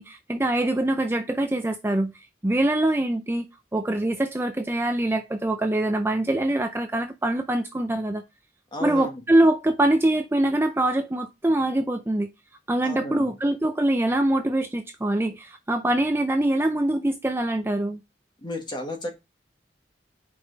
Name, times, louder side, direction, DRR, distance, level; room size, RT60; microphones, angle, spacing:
voice 1, 0.0-3.4 3.7-8.2 8.8-12.3 12.7-18.0, right 1 dB, 15° right, 0.5 m, -24 dB
voice 2, 8.7-9.2 12.8-13.3 18.4-19.1, left 1 dB, 25° left, 1.6 m, -33 dB
5.2 x 5.1 x 4.0 m
head